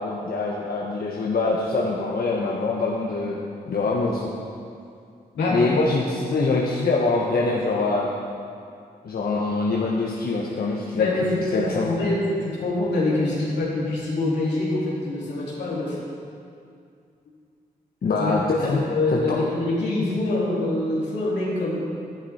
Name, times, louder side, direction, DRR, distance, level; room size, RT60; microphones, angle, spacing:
voice 1, 0.0-3.4 3.7-4.3 5.5-8.1 9.0-11.1 11.5-11.9 18.0-18.8 19.1-19.4, left 3 dB, 60° left, -3 dB, 1.2 m, -24 dB
voice 2, 11.0-16.0 18.2-18.3 18.6-21.8, left 2 dB, 90° left, -7 dB, 3.1 m, -25 dB
11.5 x 10.5 x 4.4 m, 2.4 s
supercardioid pair, 45°, 17 cm